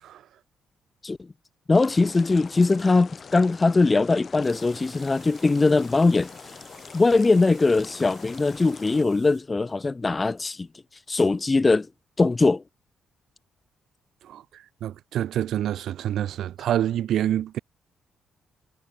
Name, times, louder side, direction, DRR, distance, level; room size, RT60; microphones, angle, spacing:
sound 1, 1.7-9.0, left 6 dB, 40° left, 1.9 m, -44 dB
voice 1, 1.7-6.3 6.9-10.7 11.1-11.9 12.2-12.6, left 3 dB, 25° left, 0.3 m, -21 dB
sound 2, 4.4-9.4, right 7 dB, 50° right, 6.4 m, -53 dB
voice 2, 14.2-17.6, right 11 dB, 75° right, 0.4 m, -27 dB
cardioid pair, 90°, 0 cm